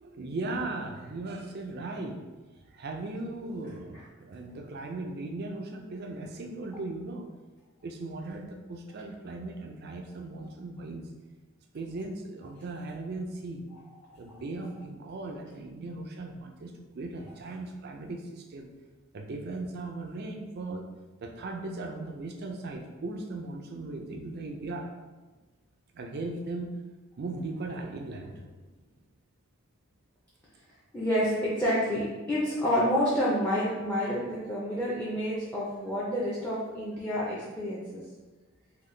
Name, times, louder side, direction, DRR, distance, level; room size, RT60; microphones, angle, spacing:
voice 1, 0.0-2.3 2.7-7.3 7.8-11.1 11.7-13.7 14.2-18.7 19.1-20.9 21.2-24.9 25.9-26.8 27.2-28.4 34.0-34.1, right 2 dB, 45° right, 3 dB, 0.4 m, -38 dB
voice 2, 30.9-38.0, equal, 10° left, -8 dB, 0.5 m, -29 dB
3.8 x 2.2 x 3.2 m, 1.2 s
head